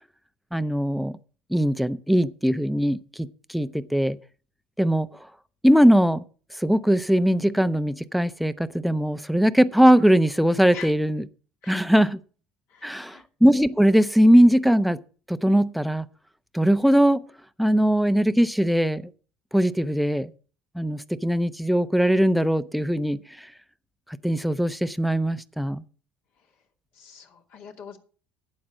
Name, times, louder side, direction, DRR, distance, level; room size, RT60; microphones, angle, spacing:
voice 1, 0.5-1.2 1.5-4.2 4.8-5.1 5.6-6.2 6.6-11.2 11.7-12.2 12.8-15.0 15.3-16.1 16.5-17.2 17.6-19.1 19.5-20.3 20.7-23.2 24.2-25.8, equal, ahead, 12 dB, 0.8 m, -20 dB
voice 2, 12.7-13.2 26.9-28.0, left 7 dB, 60° left, 2 dB, 2.6 m, -43 dB
12.0 x 8.6 x 6.1 m, 0.41 s
hypercardioid pair, 70°, 4 cm